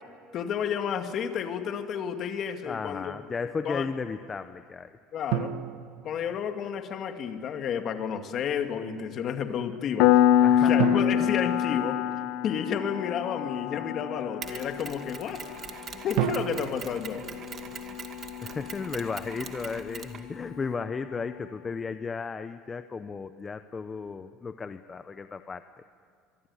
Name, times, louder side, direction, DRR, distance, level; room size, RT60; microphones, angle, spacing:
voice 1, 0.3-3.1 3.6-3.9 5.1-5.5 6.0-10.1 10.6-12.0 12.4-15.4 16.0-17.4, left 8 dB, 40° left, 6 dB, 2.2 m, -31 dB
voice 2, 2.7-4.9 10.4-11.0 18.4-25.7, left 5 dB, 20° left, 10 dB, 0.7 m, -34 dB
sound 1, 5.3-6.9 10.8-12.7 16.2-18.4, right 11 dB, 80° right, 1.2 m, -33 dB
Piano, 10.0-20.4, left 11 dB, 70° left, 0.9 m, -27 dB
Mechanisms, 14.4-20.7, right 7 dB, 35° right, 2.1 m, -43 dB
24.0 x 24.0 x 9.8 m, 2.1 s
cardioid pair, 145°, 0 cm